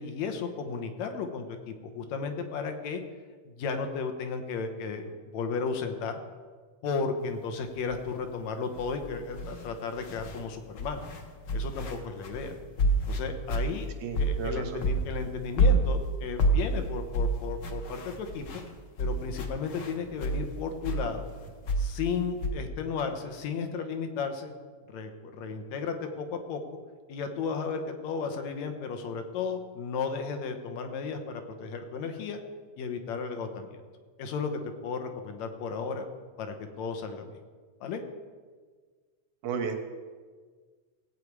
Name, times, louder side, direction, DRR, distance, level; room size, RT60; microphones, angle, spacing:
voice 1, 0.0-3.0 3.5-6.1 6.8-11.0 11.5-12.6 13.1-13.9 14.2-18.6 19.0-21.3 21.8-24.5 24.9-26.6 27.1-32.4 32.8-33.8 34.2-36.0 36.4-37.4 37.8-38.0, left 5 dB, 75° left, 6 dB, 2.3 m, -34 dB
sound 1, 7.9-8.1 8.7-10.4 10.8-14.5 14.8-20.5 20.8-22.5, right 1 dB, 55° left, 1.3 m, -28 dB
voice 2, 14.0-14.8 39.4-39.8, right 6 dB, 80° right, 5 dB, 2.6 m, -33 dB
17.0 x 8.5 x 4.8 m, 1.5 s
omnidirectional pair, 3.3 m